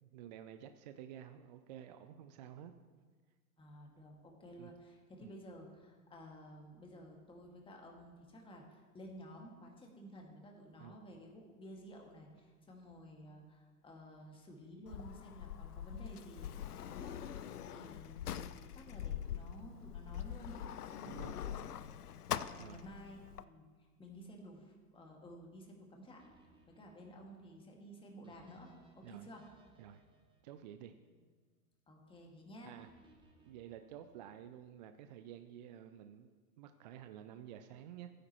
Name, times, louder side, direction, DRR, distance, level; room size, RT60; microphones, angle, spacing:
voice 1, 0.0-2.7 4.6-4.7 5.2-5.3 10.8-11.0 21.0-21.4 22.6-22.9 29.0-29.3 29.8-30.0 30.4-31.0 32.6-32.9 33.5-38.1, right 10 dB, 30° right, 9 dB, 0.4 m, -51 dB
voice 2, 3.6-21.6 22.4-23.7 24.0-26.2 26.7-29.5 31.9-32.7, equal, 10° left, 0 dB, 1.9 m, -53 dB
Sliding door, 14.9-23.4, left 10 dB, 85° left, 0.6 m, -43 dB
sound 1, 26.2-31.5 32.8-34.7, right 2 dB, 10° right, 1.4 m, -68 dB
15.5 x 10.0 x 3.0 m, 1.5 s
hypercardioid pair, 110°, 45 cm